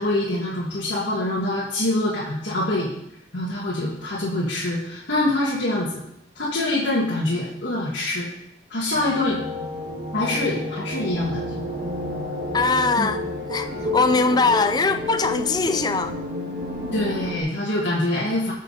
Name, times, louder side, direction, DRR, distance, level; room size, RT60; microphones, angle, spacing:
voice 1, 0.0-2.9 3.3-6.0 6.3-8.3 8.7-9.4 10.1-11.6 13.0-13.1 16.9-18.5, left 1 dB, 80° left, -8 dB, 2.3 m, -25 dB
sound 1, 8.9-17.4, left 1 dB, 50° right, 1.9 m, -30 dB
voice 2, 12.5-13.2 13.5-13.7 13.9-16.1, left 4 dB, 20° left, 9 dB, 0.4 m, -21 dB
14.0 x 6.5 x 4.2 m, 0.77 s
head